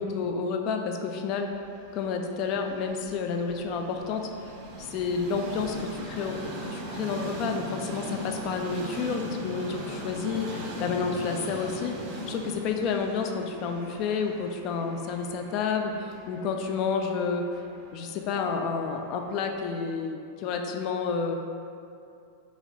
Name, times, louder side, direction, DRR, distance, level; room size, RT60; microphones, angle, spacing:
voice 1, 0.0-1.5 1.9-4.5 4.8-6.4 6.6-17.5 17.9-21.4, left 5 dB, 40° left, 4 dB, 0.3 m, -30 dB
Train, 1.5-19.6, right 1 dB, 45° right, 0.6 m, -40 dB
3.9 x 2.9 x 3.0 m, 2.5 s
figure-of-eight pair, 90°, 0 cm